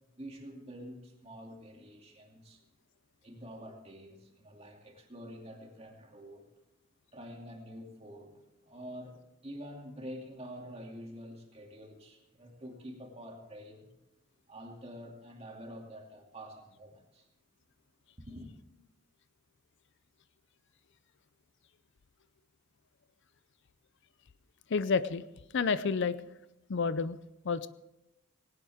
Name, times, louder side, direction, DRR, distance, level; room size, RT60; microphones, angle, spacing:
voice 1, 0.2-2.6 3.2-6.5 7.1-13.9 14.5-17.3 18.3-18.5, equal, 30° right, 1 dB, 2.6 m, -47 dB
voice 2, 24.7-25.2 25.5-26.2 26.7-27.2 27.4-27.7, left 5 dB, 55° left, 15 dB, 0.5 m, -29 dB
19.5 x 18.0 x 3.6 m, 0.89 s
head